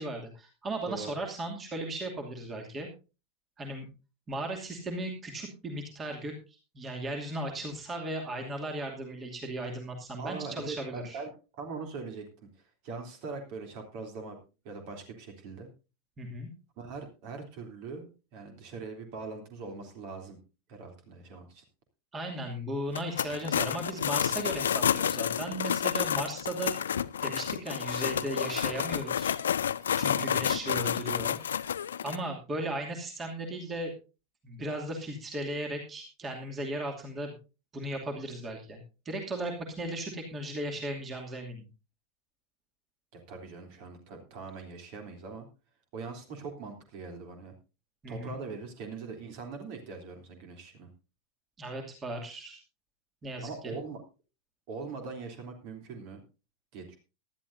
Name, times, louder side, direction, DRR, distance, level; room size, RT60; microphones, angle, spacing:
voice 1, 0.0-2.9 3.6-3.9 4.3-11.2 16.2-16.5 22.1-26.8 27.2-29.4 30.0-31.4 32.0-33.9 34.4-37.3 37.7-38.8 39.0-41.6 48.0-48.4 51.6-52.6 53.2-53.7, right 1 dB, 20° right, 2 dB, 2.6 m, -36 dB
voice 2, 10.1-12.2 12.8-14.4 14.6-15.7 16.8-20.4 20.7-21.6 30.0-30.3 43.1-45.5 45.9-47.5 48.0-50.9 53.4-54.0 54.7-56.2 56.7-57.0, right 4 dB, 45° right, 4 dB, 3.2 m, -41 dB
sound 1, 22.9-32.2, left 8 dB, 65° left, 0.5 m, -30 dB
18.5 x 12.0 x 2.7 m, 0.32 s
figure-of-eight pair, 90°, 0 cm